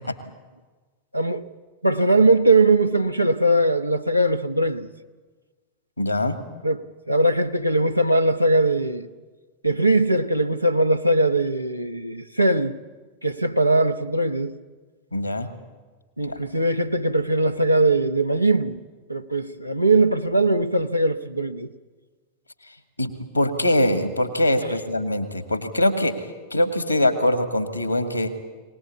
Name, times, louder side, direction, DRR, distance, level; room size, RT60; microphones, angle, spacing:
voice 1, 1.1-1.5 1.8-4.9 6.6-6.8 7.1-9.1 9.6-12.7 13.2-14.5 16.2-18.8 19.1-21.7, right 2 dB, 90° right, 0.9 m, -20 dB
voice 2, 6.0-6.4 15.1-15.5 16.3-16.4 23.0-28.3, left 1 dB, 90° left, 1.8 m, -23 dB
23.0 x 19.0 x 8.5 m
figure-of-eight pair, 90°, 0 cm